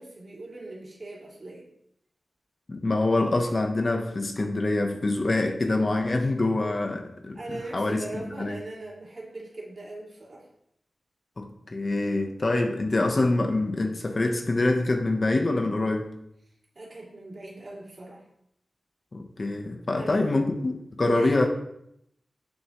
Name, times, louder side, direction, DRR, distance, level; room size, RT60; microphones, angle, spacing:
voice 1, 0.0-1.7 7.3-10.5 16.7-18.2 19.9-20.5 21.0-21.5, right 2 dB, 45° right, -4 dB, 2.9 m, -39 dB
voice 2, 2.7-8.1 8.4-8.6 11.4-16.1 19.1-21.5, left 2 dB, 40° left, 3 dB, 1.0 m, -25 dB
9.1 x 7.0 x 3.1 m, 0.77 s
wide cardioid pair, 110°, 0 cm